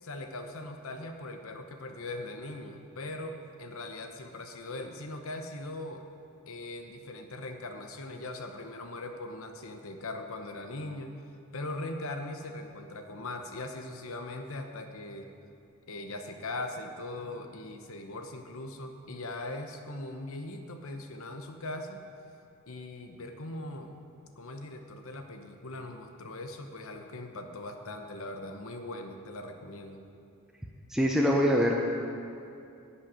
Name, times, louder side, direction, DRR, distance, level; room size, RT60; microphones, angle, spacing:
voice 1, 0.0-6.0 6.5-11.1 11.5-15.3 15.9-22.0 22.7-23.9 24.4-30.0, left 2 dB, 65° left, 5 dB, 0.9 m, -40 dB
voice 2, 30.9-31.9, equal, ahead, -2 dB, 0.6 m, -24 dB
11.0 x 5.6 x 8.7 m, 2.6 s
head